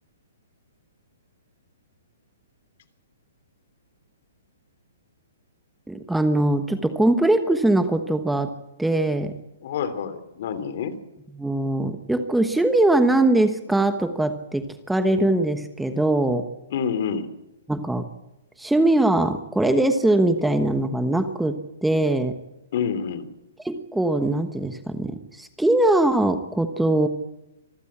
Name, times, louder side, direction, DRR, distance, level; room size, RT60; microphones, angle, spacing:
voice 1, 5.9-8.5 8.8-9.3 11.3-16.5 17.7-18.1 18.6-22.3 23.6-27.1, right 1 dB, 5° right, 8 dB, 1.2 m, -21 dB
voice 2, 9.6-11.0 16.7-17.3 22.7-23.3, left 7 dB, 50° left, 12 dB, 3.1 m, -27 dB
26.0 x 15.0 x 8.7 m, 0.93 s
hypercardioid pair, 160°, 0 cm